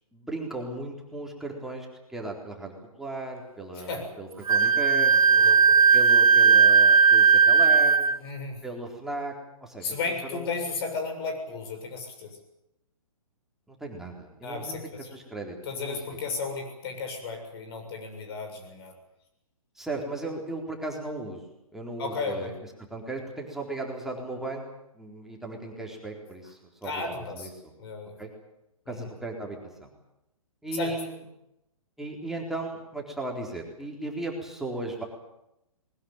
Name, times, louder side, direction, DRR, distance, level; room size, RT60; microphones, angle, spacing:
voice 1, 0.1-5.4 5.9-8.1 8.6-9.3 9.6-10.0 10.2-10.5 13.7-16.0 19.8-21.4 21.7-22.5 22.9-24.6 24.9-27.0 27.3-27.7 28.2-28.3 28.9-29.9 30.6-31.1 32.0-35.0, right 2 dB, ahead, -1 dB, 4.1 m, -36 dB
Wind instrument woodwind instrument, 4.5-8.2, right 6 dB, 75° right, 1.1 m, -17 dB
voice 2, 5.3-5.9 8.2-8.6 9.8-12.4 14.4-15.1 15.6-18.9 22.0-22.5 26.8-27.5 27.8-28.2 28.9-29.1 30.7-31.0, left 4 dB, 45° left, 5 dB, 7.1 m, -34 dB
21.0 x 20.0 x 9.2 m, 0.85 s
figure-of-eight pair, 130°, 18 cm